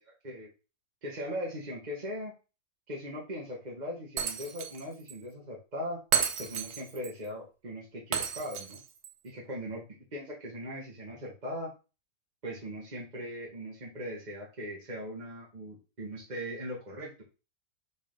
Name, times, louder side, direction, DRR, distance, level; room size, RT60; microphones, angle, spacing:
voice 1, 1.0-2.4 2.9-6.0 6.4-8.8 9.2-9.8 10.1-11.7 12.4-17.2, equal, 30° right, -2 dB, 1.5 m, -39 dB
Shatter, 4.2-4.8 5.1-5.2 6.1-7.1 8.1-9.1, right 7 dB, 85° right, 1.4 m, -32 dB
5.4 x 4.9 x 3.7 m, 0.31 s
omnidirectional pair, 1.6 m